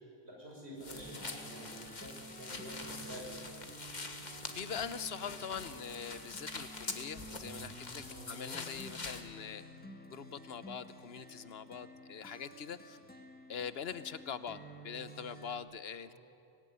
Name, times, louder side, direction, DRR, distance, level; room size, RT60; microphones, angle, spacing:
voice 1, 0.2-3.2 8.1-8.4 16.1-16.2, right 1 dB, 90° right, -3 dB, 7.3 m, -49 dB
sound 1, 0.8-9.3, left 3 dB, 45° left, 1.7 m, -45 dB
sound 2, 0.9-15.6, right 1 dB, 10° left, 1.9 m, -52 dB
voice 2, 4.5-9.6 10.1-13.0 13.5-14.6 14.8-16.2, left 7 dB, 75° left, 14 dB, 1.1 m, -43 dB
24.5 x 18.0 x 10.0 m, 2.3 s
omnidirectional pair, 1.1 m